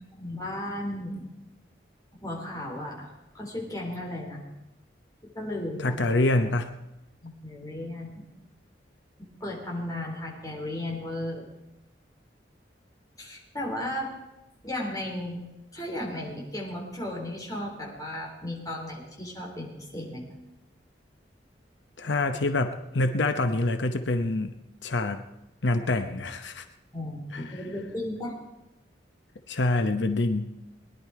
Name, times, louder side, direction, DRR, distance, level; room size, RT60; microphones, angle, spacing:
voice 1, 0.1-1.2 2.2-4.4 5.4-5.9 7.2-8.2 9.4-11.5 13.2-14.1 14.6-15.4 15.7-20.2 26.9-28.3, left 1 dB, 20° left, -2 dB, 3.6 m, -35 dB
voice 2, 5.8-6.7 22.0-24.5 24.8-25.2 25.6-26.7 27.3-27.4 29.5-30.5, left 2 dB, 85° left, 8 dB, 0.8 m, -26 dB
20.5 x 11.0 x 4.8 m, 0.96 s
head